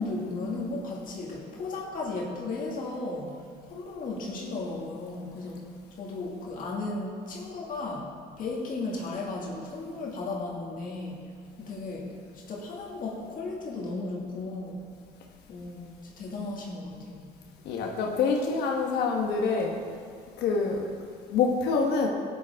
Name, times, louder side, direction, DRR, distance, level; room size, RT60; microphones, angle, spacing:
voice 1, 0.0-3.3 3.7-5.6 6.0-8.1 8.4-11.2 11.6-12.1 12.5-14.8 15.5-17.2, left 3 dB, 55° left, -3 dB, 2.0 m, -35 dB
voice 2, 17.6-19.8 20.4-20.9 21.3-22.1, left 4 dB, 80° left, 1 dB, 1.1 m, -26 dB
13.0 x 9.8 x 3.5 m, 2.2 s
cardioid pair, 110°, 17 cm